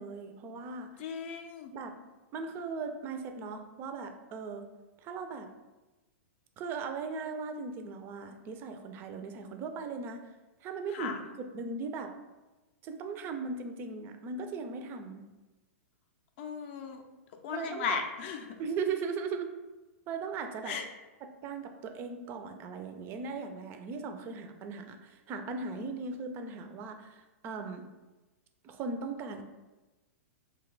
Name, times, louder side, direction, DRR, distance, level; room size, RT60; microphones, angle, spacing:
voice 1, 0.0-0.9 1.7-2.0 2.3-4.7 5.0-5.5 6.6-10.3 10.6-12.1 12.8-15.2 17.5-18.0 18.6-19.5 20.1-20.8 21.2-27.8 28.6-29.4, right 4 dB, 30° right, 6 dB, 0.3 m, -38 dB
voice 2, 1.0-1.7 10.9-11.2 16.4-17.0 17.4-18.5 20.7-20.9, left 6 dB, 55° left, 5 dB, 0.4 m, -36 dB
2.6 x 2.2 x 3.8 m, 1.1 s
hypercardioid pair, 130°, 8 cm